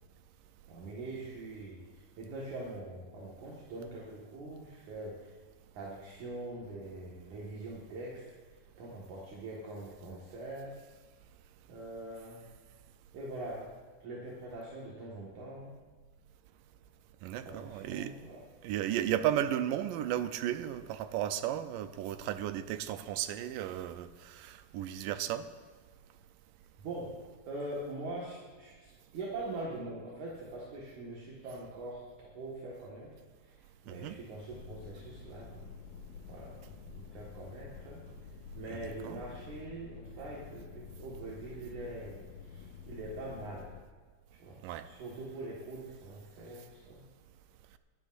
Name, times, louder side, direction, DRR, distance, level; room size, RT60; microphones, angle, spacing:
voice 1, 0.7-5.3 5.7-8.2 8.8-10.8 11.7-12.5 13.1-13.7 14.0-15.7 17.4-18.4 26.8-27.2 27.5-33.1 33.4-35.6 36.3-36.6 36.9-38.0 38.6-43.7 44.4-47.0, right 2 dB, 65° right, 3.0 m, -43 dB
voice 2, 17.2-18.1 18.6-25.5 33.9-34.2 38.7-39.2 44.6-44.9, right 11 dB, 80° right, 2.2 m, -34 dB
sound 1, 34.5-43.8, left 6 dB, 80° left, 2.1 m, -49 dB
24.5 x 11.5 x 2.6 m
omnidirectional pair, 3.9 m